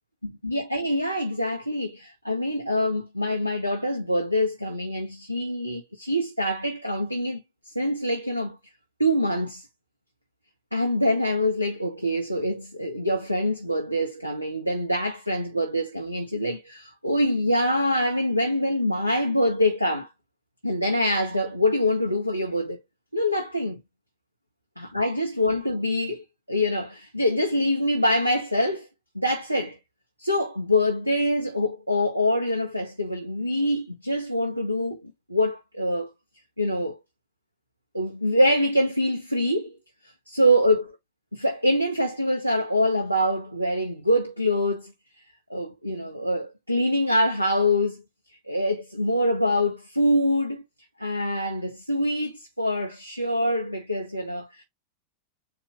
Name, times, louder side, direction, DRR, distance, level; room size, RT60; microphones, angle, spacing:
voice 1, 0.4-7.4 7.7-8.6 9.0-9.6 10.7-20.1 20.6-22.8 23.1-23.8 24.8-28.9 29.1-29.8 30.2-35.0 35.3-36.1 36.6-37.0 37.9-39.8 40.3-41.0 41.3-44.9 45.5-48.0 48.5-50.6 51.0-54.6, left 1 dB, 90° right, 0.7 m, -25 dB
4.2 x 2.8 x 3.8 m
figure-of-eight pair, 90°, 0 cm